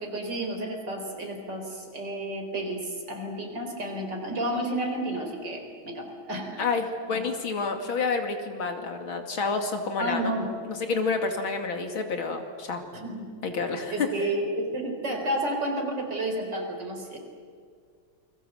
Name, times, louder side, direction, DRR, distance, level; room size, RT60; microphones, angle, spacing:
voice 1, 0.0-6.7 7.1-7.2 10.0-10.5 12.9-13.3 13.9-17.2, right 1 dB, 60° right, 3 dB, 4.8 m, -31 dB
voice 2, 6.6-10.3 10.6-12.8 13.4-14.1, left 4 dB, 90° left, 5 dB, 3.3 m, -29 dB
28.5 x 22.0 x 8.0 m, 2.1 s
omnidirectional pair, 2.2 m